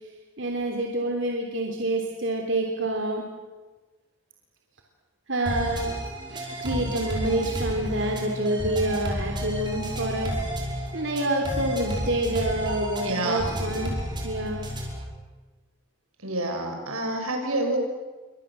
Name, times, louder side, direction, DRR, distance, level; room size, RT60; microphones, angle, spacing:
voice 1, 0.4-3.2 5.3-5.9 6.3-10.4 10.6-13.9 14.2-14.6, right 1 dB, 60° right, 1 dB, 3.4 m, -27 dB
sound 1, 5.5-15.1, equal, 20° right, 5.4 m, -32 dB
voice 2, 13.0-13.6 16.2-17.8, right 1 dB, 90° right, 3 dB, 7.1 m, -28 dB
29.5 x 24.5 x 7.7 m, 1.3 s
head